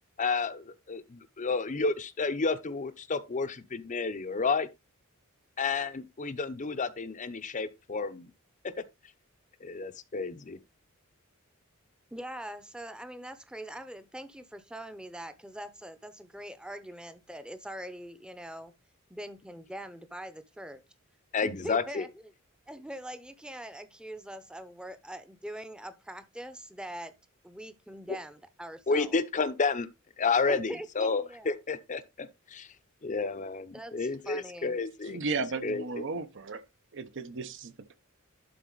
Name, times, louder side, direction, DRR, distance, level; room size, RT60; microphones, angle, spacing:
voice 1, 0.2-4.7 5.6-8.3 8.6-8.8 9.6-10.6 21.3-22.1 28.9-29.9 30.2-32.7 33.0-35.2 35.6-36.0, left 4 dB, 35° left, 0.7 m, -31 dB
voice 2, 12.1-18.7 19.1-20.8 21.4-22.3 22.7-27.1 27.4-29.1 30.5-31.5 33.7-34.8, right 1 dB, 5° right, 0.7 m, -43 dB
voice 3, 35.0-36.6 36.9-38.0, right 4 dB, 60° right, 0.9 m, -35 dB
11.5 x 4.0 x 3.9 m
head